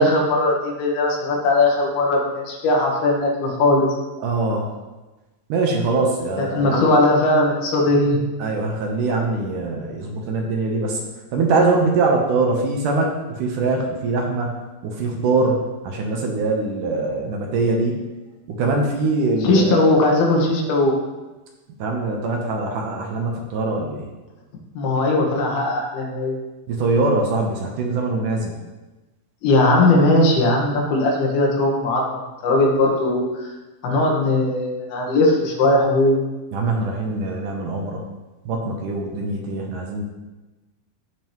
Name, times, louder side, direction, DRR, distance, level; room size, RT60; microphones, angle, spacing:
voice 1, 0.0-3.9 6.4-8.2 19.4-20.9 24.8-26.4 29.4-33.5 33.8-36.3, left 2 dB, 85° left, -1 dB, 3.5 m, -19 dB
voice 2, 4.2-4.7 5.5-6.8 8.4-11.0 11.3-18.1 18.5-19.9 21.8-24.1 26.7-28.6 36.5-38.0 38.5-40.0, right 3 dB, 70° right, 0 dB, 2.2 m, -23 dB
15.5 x 5.3 x 3.0 m, 1.1 s
omnidirectional pair, 4.3 m